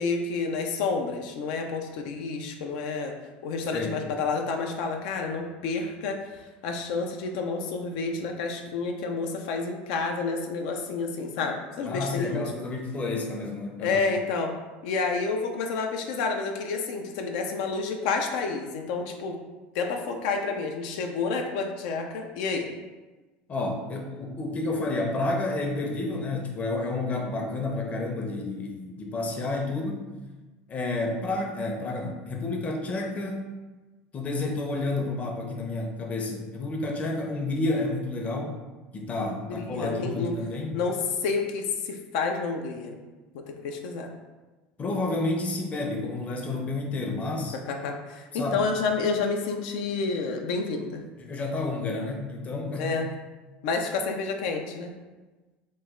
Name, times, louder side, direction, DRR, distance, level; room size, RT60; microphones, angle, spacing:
voice 1, 0.0-3.1 3.4-6.2 6.6-12.5 13.8-14.5 14.8-19.4 19.7-22.7 39.5-40.3 40.7-43.0 43.3-44.1 47.7-51.0 52.8-53.1 53.6-54.9, left 4 dB, 75° left, 3 dB, 0.4 m, -29 dB
voice 2, 11.8-14.0 23.5-30.2 30.7-33.5 34.1-38.6 38.9-40.8 44.8-47.6 48.3-48.7 51.2-52.9, left 2 dB, 30° left, 2 dB, 0.6 m, -30 dB
3.0 x 2.1 x 3.6 m, 1.2 s
supercardioid pair, 110°, 5 cm